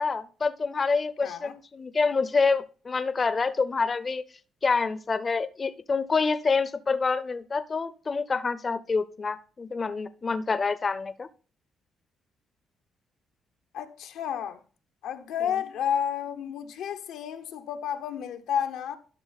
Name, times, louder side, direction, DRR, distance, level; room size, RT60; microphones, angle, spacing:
voice 1, 0.0-4.2 4.6-11.3, left 4 dB, 35° left, 0.5 m, -27 dB
voice 2, 1.2-1.5 13.7-14.6 15.0-19.0, left 8 dB, 85° left, 0.8 m, -31 dB
12.0 x 5.8 x 4.0 m
cardioid pair, 90°, 0 cm